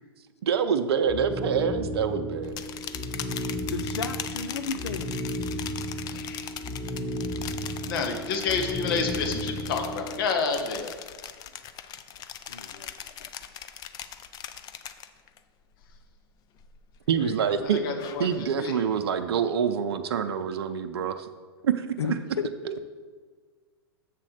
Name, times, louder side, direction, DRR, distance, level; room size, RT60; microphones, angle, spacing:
voice 1, 0.4-2.6 17.1-21.3 21.6-22.1 22.6-22.7, right 7 dB, 70° right, 8 dB, 0.5 m, -26 dB
sound 1, 1.0-10.3, equal, 5° right, 0.7 m, -34 dB
sound 2, 2.4-15.4 15.7-16.2 16.6-18.5, left 10 dB, 30° left, 0.5 m, -40 dB
voice 2, 3.7-5.1 12.5-13.3 22.0-22.5, left 6 dB, 85° left, 11 dB, 0.6 m, -33 dB
voice 3, 6.0-6.5 7.8-10.9 17.6-18.3 18.6-18.7, left 5 dB, 55° left, 4 dB, 1.2 m, -29 dB
7.5 x 4.2 x 6.5 m, 1.5 s
hypercardioid pair, 115°, 13 cm